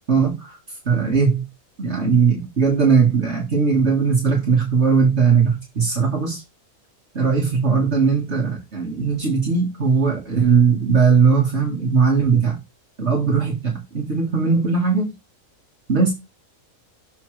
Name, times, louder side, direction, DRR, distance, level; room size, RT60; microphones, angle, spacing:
voice 1, 0.1-0.6 0.9-1.4 1.8-6.4 7.1-12.6 13.0-15.1 15.9-16.1, right 5 dB, 50° right, 1.9 m, -19 dB
6.9 x 4.9 x 3.2 m
omnidirectional pair, 1.5 m